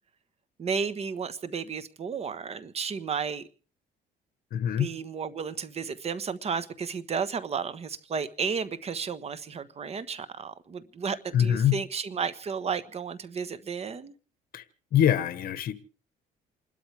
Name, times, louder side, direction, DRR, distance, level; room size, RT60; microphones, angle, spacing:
voice 1, 0.6-3.5 4.8-14.1, right 6 dB, 40° right, 1.3 m, -33 dB
voice 2, 4.5-4.9 11.3-11.8 14.5-14.6 14.9-15.7, left 10 dB, 60° left, 1.4 m, -24 dB
28.5 x 13.0 x 3.5 m
cardioid pair, 110°, 17 cm